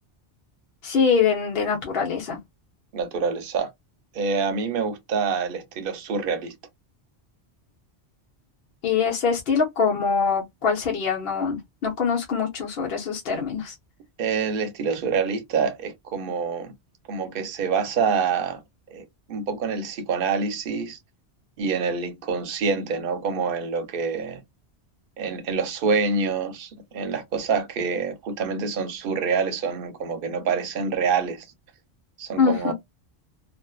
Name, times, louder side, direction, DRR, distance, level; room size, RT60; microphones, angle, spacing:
voice 1, 0.8-2.4 8.8-13.7 32.4-32.7, left 6 dB, 60° left, 0.9 m, -23 dB
voice 2, 2.9-3.7 4.1-6.5 14.2-16.7 17.1-18.6 18.9-21.0 21.6-24.4 25.2-31.5 32.2-32.7, right 5 dB, 60° right, 0.8 m, -26 dB
2.4 x 2.4 x 2.2 m
omnidirectional pair, 1.2 m